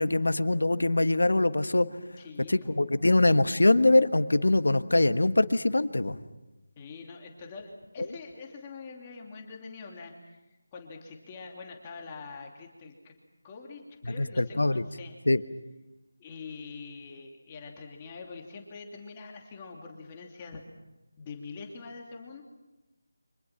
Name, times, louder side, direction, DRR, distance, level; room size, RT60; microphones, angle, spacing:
voice 1, 0.0-1.9 2.5-6.2 14.2-14.8 15.3-15.4, left 2 dB, 75° left, 11 dB, 1.4 m, -23 dB
voice 2, 2.2-2.8 6.8-13.2 13.4-15.2 16.2-20.6 21.2-22.4, left 4 dB, 20° left, 0 dB, 2.8 m, -44 dB
30.0 x 25.5 x 6.0 m, 1.0 s
figure-of-eight pair, 165°, 0 cm